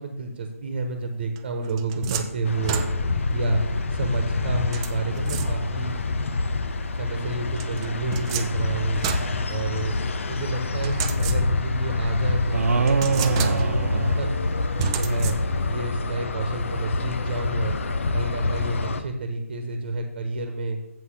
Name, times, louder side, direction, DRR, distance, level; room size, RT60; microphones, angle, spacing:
voice 1, 0.0-2.8 3.3-3.6 3.9-6.0 6.9-9.0 9.5-9.9 10.3-14.3 14.9-15.3 15.6-17.8 18.1-20.8, right 3 dB, 40° right, 5 dB, 1.2 m, -30 dB
sound 1, 1.4-3.3 4.7-5.9 7.6-10.1 10.8-11.8 12.3-12.4 12.9-13.9 14.8-15.8, right 7 dB, 20° right, 0.5 m, -32 dB
sound 2, 2.5-19.0, left 3 dB, 60° left, 0.8 m, -27 dB
sound 3, 12.5-15.0, right 5 dB, 70° right, 0.5 m, -24 dB
7.7 x 5.7 x 6.5 m, 0.88 s
hypercardioid pair, 160°, 8 cm